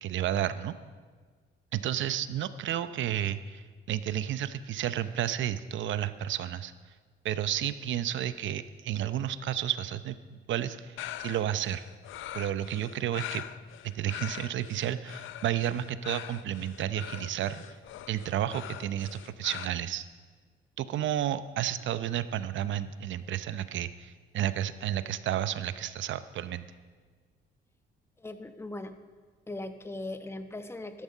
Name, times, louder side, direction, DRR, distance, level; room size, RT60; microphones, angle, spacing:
voice 1, 0.0-0.7 1.7-6.7 7.2-11.9 12.3-13.4 13.8-17.6 18.1-20.1 20.8-26.6, right 11 dB, 70° right, 12 dB, 0.7 m, -32 dB
sound 1, 11.0-19.7, left 12 dB, 80° left, 0.5 m, -43 dB
voice 2, 28.2-29.0 29.5-31.0, left 2 dB, 10° left, 8 dB, 1.0 m, -39 dB
13.5 x 12.0 x 5.5 m, 1.5 s
cardioid pair, 90°, 20 cm